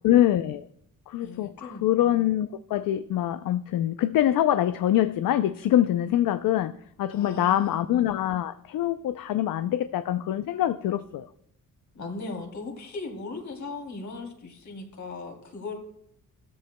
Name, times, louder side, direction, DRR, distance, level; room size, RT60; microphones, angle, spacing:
voice 1, 0.0-0.7 1.1-6.7 7.0-11.3, left 12 dB, 75° left, 0.5 m, -24 dB
voice 2, 1.2-1.9 7.1-7.8 11.9-15.7, left 3 dB, 55° left, 2.8 m, -38 dB
15.5 x 13.5 x 2.2 m
cardioid pair, 100°, 34 cm